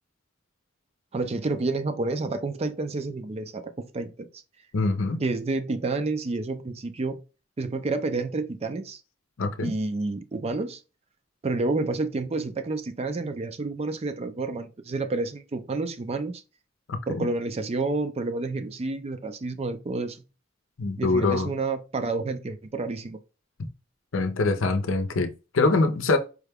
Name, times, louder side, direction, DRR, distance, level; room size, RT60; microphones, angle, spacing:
voice 1, 1.1-4.3 5.2-7.2 7.6-9.0 9.6-10.8 11.4-16.4 17.1-20.2 21.0-23.2, right 3 dB, 30° right, 0.4 m, -29 dB
voice 2, 4.7-5.2 9.4-9.7 16.9-17.3 20.8-21.5 24.1-26.2, left 3 dB, 85° left, 0.6 m, -24 dB
4.7 x 2.2 x 3.4 m
head